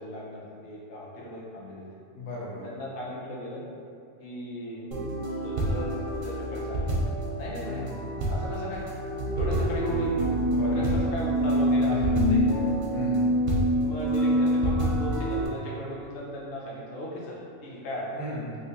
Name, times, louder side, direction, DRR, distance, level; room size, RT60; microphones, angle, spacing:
voice 1, 0.0-1.9 2.6-3.6 4.2-4.9 5.3-7.0 7.4-7.8 8.3-8.8 9.3-10.2 10.6-12.6 13.8-18.2, left 1 dB, 55° left, -5 dB, 0.8 m, -37 dB
voice 2, 2.1-2.7 7.6-8.0 9.5-9.6 10.5-11.0 11.9-12.3 12.9-13.3 18.1-18.6, left 1 dB, 85° left, -6 dB, 1.2 m, -36 dB
sound 1, 4.9-15.5, equal, 60° right, 0.6 m, -26 dB
3.2 x 2.7 x 2.9 m, 2.4 s
omnidirectional pair, 1.4 m